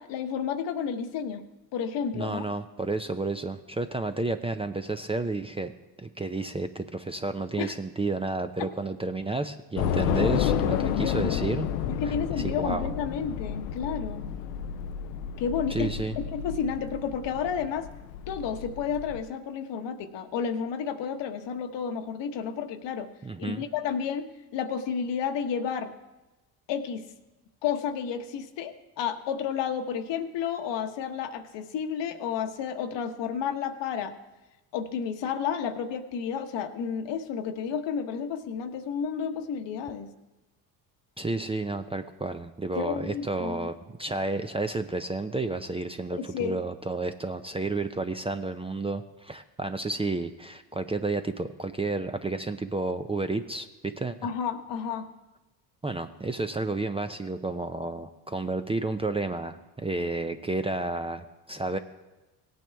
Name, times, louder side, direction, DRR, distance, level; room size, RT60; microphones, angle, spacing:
voice 1, 0.0-1.4 1.7-2.4 7.6-7.7 10.7-11.4 12.0-14.2 15.4-15.9 16.3-17.9 18.3-23.1 23.4-25.9 26.7-27.0 27.6-34.1 34.7-40.1 42.8-43.7 46.1-46.6 54.2-55.1, left 7 dB, 60° left, 7 dB, 1.2 m, -31 dB
voice 2, 2.1-5.7 6.0-11.7 12.0-12.9 15.7-16.2 23.2-23.6 41.2-54.2 55.8-61.8, right 2 dB, 10° right, 8 dB, 0.5 m, -31 dB
Train / Subway metro underground, 9.8-19.2, left 8 dB, 85° left, 0.8 m, -31 dB
17.0 x 9.2 x 3.5 m, 1.1 s
supercardioid pair, 75°, 48 cm